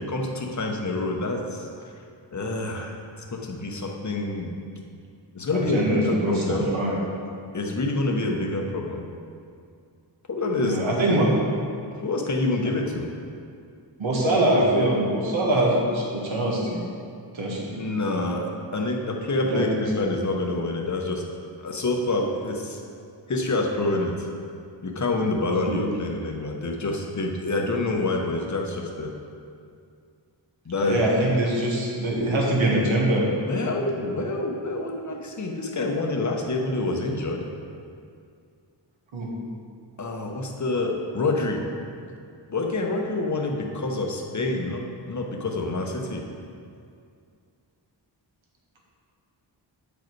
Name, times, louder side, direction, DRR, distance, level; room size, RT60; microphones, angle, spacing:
voice 1, 0.0-1.7 2.3-3.0 3.3-4.5 5.3-6.7 7.5-9.0 10.3-10.8 11.1-11.2 11.9-13.1 17.8-21.2 21.6-22.8 23.3-24.3 24.8-29.1 30.6-31.0 33.5-37.5 40.0-41.6 42.5-46.2, left 2 dB, 40° left, 1 dB, 0.9 m, -27 dB
voice 2, 5.5-7.0 10.5-11.3 14.0-16.8 17.3-17.8 19.5-19.8 25.6-25.8 30.8-33.3 39.1-39.3, right 1 dB, 85° right, -3 dB, 1.6 m, -23 dB
8.3 x 5.1 x 4.6 m, 2.3 s
wide cardioid pair, 120°, 46 cm